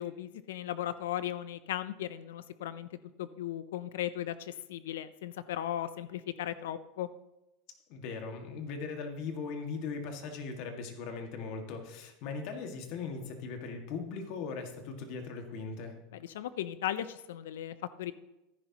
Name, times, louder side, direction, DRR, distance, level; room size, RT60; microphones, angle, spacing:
voice 1, 0.0-7.1 16.1-18.1, left 12 dB, 90° left, 14 dB, 0.5 m, -37 dB
voice 2, 7.9-16.0, left 4 dB, 55° left, 4 dB, 1.9 m, -39 dB
14.0 x 10.5 x 3.0 m, 0.94 s
supercardioid pair, 130°, 0 cm